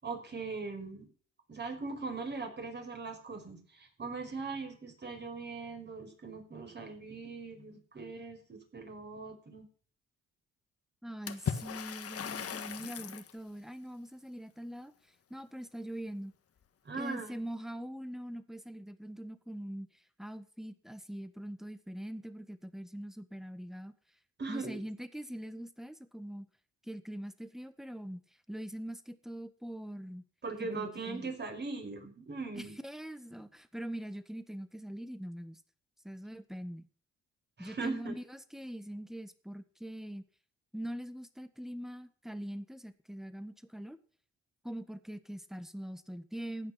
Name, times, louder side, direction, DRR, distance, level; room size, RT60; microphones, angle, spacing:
voice 1, 0.0-1.1 1.5-9.7 16.9-17.4 24.4-24.8 30.4-32.8 37.6-38.1, right 4 dB, 35° right, 4 dB, 5.3 m, -40 dB
voice 2, 11.0-14.9 15.3-16.3 16.9-19.9 20.2-23.9 24.5-26.5 26.8-28.2 28.5-30.2 30.6-31.3 32.5-35.6 36.0-36.9 37.6-40.2 40.7-44.0 44.6-46.7, equal, ahead, 11 dB, 1.5 m, -43 dB
Water / Splash splatter, 11.3-13.3, left 8 dB, 50° left, 1.6 m, -38 dB
15.0 x 9.6 x 6.0 m, 0.43 s
cardioid pair, 90°, 30 cm